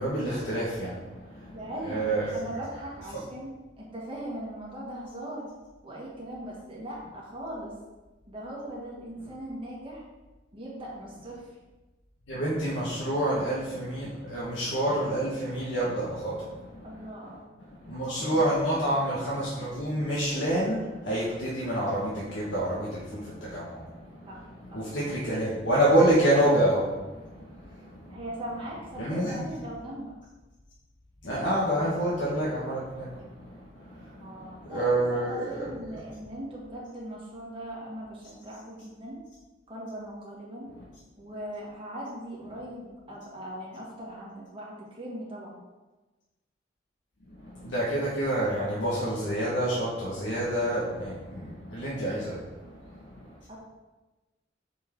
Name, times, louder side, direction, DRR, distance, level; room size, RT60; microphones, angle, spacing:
voice 1, 0.0-1.6 1.8-2.4 3.1-3.2 12.3-16.9 17.6-28.2 29.0-29.5 31.2-36.0 40.8-40.9 47.3-53.3, right 1 dB, 85° left, -7 dB, 1.5 m, -28 dB
voice 2, 1.5-2.1 2.3-5.5 5.8-7.8 8.3-10.0 10.5-11.5 16.8-17.4 18.2-18.4 24.3-24.4 24.7-24.9 28.1-30.1 34.2-39.2 39.7-40.7 41.2-45.6 53.5-53.6, right 1 dB, 30° right, -5 dB, 1.8 m, -39 dB
6.7 x 4.7 x 4.7 m, 1.2 s
head